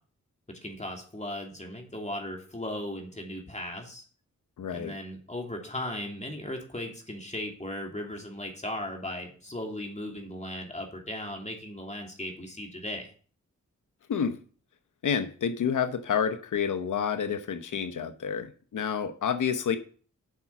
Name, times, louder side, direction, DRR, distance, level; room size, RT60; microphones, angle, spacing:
voice 1, 0.5-4.0 4.7-13.1, left 1 dB, 25° left, 2.8 m, -37 dB
voice 2, 4.6-4.9 14.1-14.4 15.0-19.8, left 7 dB, 85° left, 0.9 m, -29 dB
8.4 x 6.0 x 7.1 m
cardioid pair, 60°, 30 cm